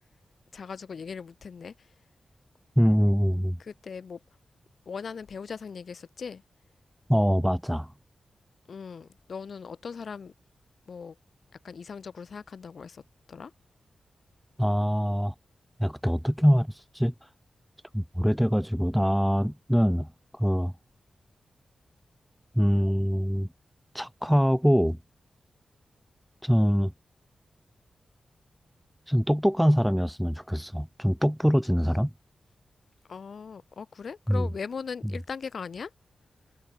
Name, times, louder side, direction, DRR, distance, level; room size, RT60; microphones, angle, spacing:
voice 1, 0.5-1.7 3.6-4.2 4.9-6.4 8.7-10.3 10.9-11.1 11.6-13.0 13.3-13.5 33.1-35.9, left 5 dB, 60° left, 4.8 m, -39 dB
voice 2, 2.8-3.6 7.1-7.9 14.6-15.3 15.8-17.1 17.9-20.1 20.3-20.7 22.5-23.5 23.9-25.0 26.4-26.9 29.1-32.1 34.3-34.5, equal, ahead, 0.4 m, -24 dB
wide cardioid pair, 135°, 0 cm